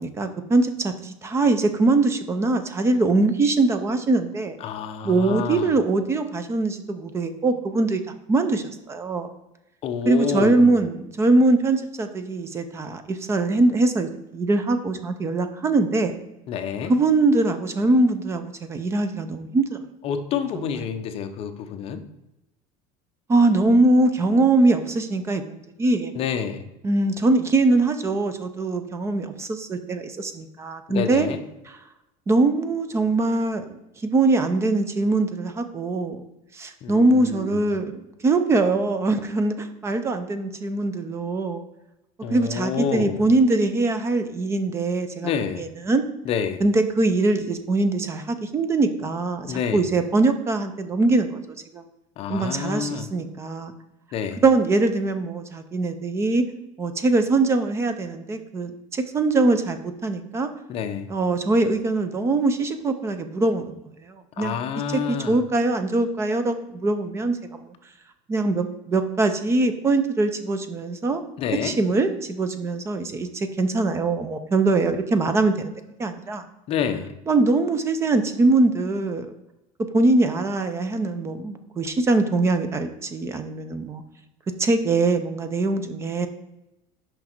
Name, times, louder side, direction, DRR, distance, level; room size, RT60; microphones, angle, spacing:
voice 1, 0.0-4.6 5.0-8.0 8.3-9.3 10.1-16.1 16.9-19.8 20.5-20.8 23.3-26.1 26.8-31.3 32.3-36.2 36.5-41.6 42.3-45.3 45.6-46.0 46.6-51.4 51.7-51.8 52.3-53.7 54.4-56.4 56.8-60.5 61.1-63.8 64.0-64.5 64.9-67.7 68.3-71.2 71.6-75.7 76.0-76.4 77.3-79.3 79.9-84.0 84.6-86.3, right 2 dB, 15° right, 9 dB, 0.4 m, -22 dB
voice 2, 4.6-5.7 9.8-10.7 16.5-16.9 20.0-22.0 26.1-26.7 30.9-31.4 36.8-37.7 42.2-43.3 45.2-45.7 46.2-46.6 49.5-49.9 52.2-53.1 54.1-54.4 60.7-61.1 64.4-65.4 71.4-71.7 76.7-77.1, left 7 dB, 35° left, 7 dB, 0.6 m, -28 dB
6.1 x 5.3 x 4.4 m, 0.91 s
cardioid pair, 170°, 17 cm